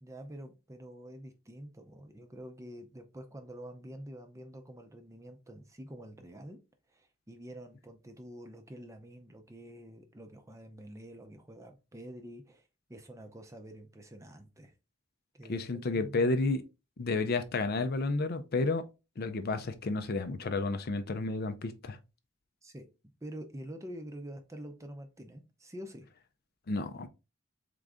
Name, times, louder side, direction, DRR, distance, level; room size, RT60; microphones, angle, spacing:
voice 1, 0.0-6.6 6.9-12.6 12.9-14.7 15.3-16.3 22.6-22.9 23.2-26.1, equal, 15° right, 0.6 m, -47 dB
voice 2, 15.5-16.6 17.0-18.8 19.2-22.0 26.7-27.1, left 3 dB, 50° left, 0.5 m, -31 dB
3.7 x 3.7 x 3.5 m
head